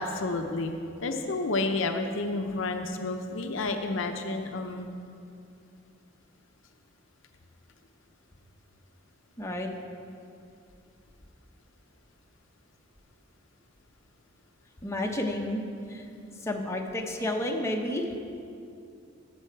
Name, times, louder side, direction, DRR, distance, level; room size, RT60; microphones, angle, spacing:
voice 1, 0.0-4.9, left 2 dB, 70° left, 5 dB, 0.7 m, -30 dB
voice 2, 9.4-9.7 14.8-16.1 16.4-18.1, left 1 dB, 15° left, 1 dB, 0.9 m, -31 dB
14.5 x 7.0 x 4.6 m, 2.5 s
head